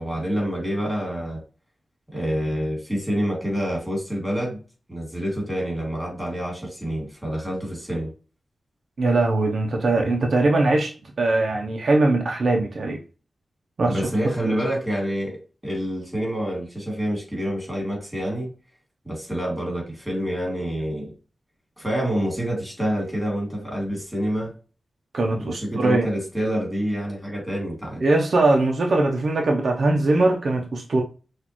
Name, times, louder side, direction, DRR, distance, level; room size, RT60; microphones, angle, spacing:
voice 1, 0.0-1.4 2.1-4.6 4.9-8.1 13.9-18.5 19.1-21.1 21.8-24.5 25.4-28.0, equal, 5° right, 2.4 m, -27 dB
voice 2, 9.0-13.0 13.8-14.0 14.5-14.6 25.1-26.1 28.0-31.0, right 2 dB, 60° right, 0.6 m, -21 dB
6.1 x 2.5 x 2.9 m
wide cardioid pair, 125°, 0 cm